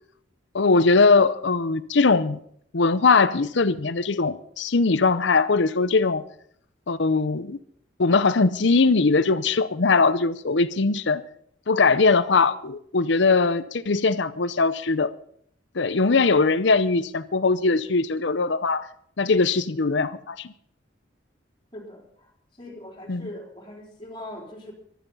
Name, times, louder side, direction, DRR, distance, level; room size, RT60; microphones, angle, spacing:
voice 1, 0.5-2.4 2.7-6.2 6.9-7.6 8.0-11.2 11.7-15.1 15.7-18.9 19.2-20.5 23.1-23.3, left 4 dB, 65° left, 15 dB, 0.7 m, -21 dB
voice 2, 21.7-24.7, left 1 dB, 25° left, 0 dB, 3.8 m, -41 dB
14.5 x 12.5 x 5.5 m, 0.65 s
head